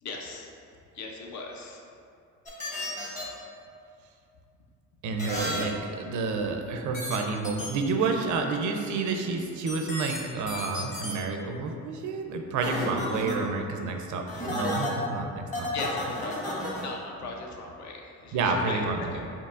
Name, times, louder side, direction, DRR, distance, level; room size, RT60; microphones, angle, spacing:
voice 1, 0.0-0.5 0.9-1.8 15.7-16.4 16.6-19.1, left 3 dB, 65° left, 1 dB, 0.6 m, -38 dB
sound 1, 2.5-3.2 5.2-5.6 6.9-7.2 7.4-7.7 9.7-10.2 10.5-11.1 12.6-13.3 14.3-14.9 15.5-16.8, left 1 dB, 25° left, 1.0 m, -32 dB
voice 2, 5.0-15.7 18.3-19.3, right 4 dB, 80° right, 4 dB, 0.5 m, -29 dB
4.6 x 2.9 x 2.4 m, 2.5 s
cardioid pair, 90°, 30 cm